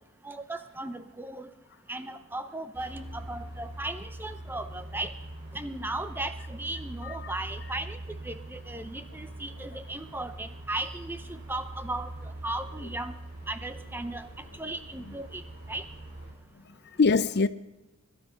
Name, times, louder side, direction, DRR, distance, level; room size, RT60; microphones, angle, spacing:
voice 1, 0.2-1.5 1.9-5.1 5.5-8.0 8.2-12.1 12.4-13.1 13.5-14.3 14.6-15.4 15.7-15.8, right 2 dB, 10° right, 0.7 m, -36 dB
sound 1, 2.7-16.3, right 1 dB, 50° right, 4.7 m, -43 dB
voice 2, 16.7-17.5, left 4 dB, 50° left, 0.5 m, -25 dB
22.5 x 12.0 x 5.2 m
head